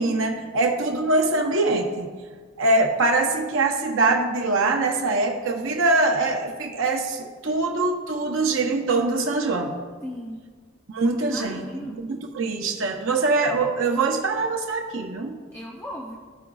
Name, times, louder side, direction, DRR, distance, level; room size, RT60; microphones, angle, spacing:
voice 1, 0.0-2.1 2.6-9.7 10.9-11.6 12.1-15.4, right 3 dB, 65° right, 2 dB, 0.6 m, -23 dB
voice 2, 10.0-10.4 11.2-12.0 15.5-16.2, equal, 10° left, -2 dB, 0.5 m, -36 dB
14.5 x 4.9 x 2.3 m, 1.5 s
head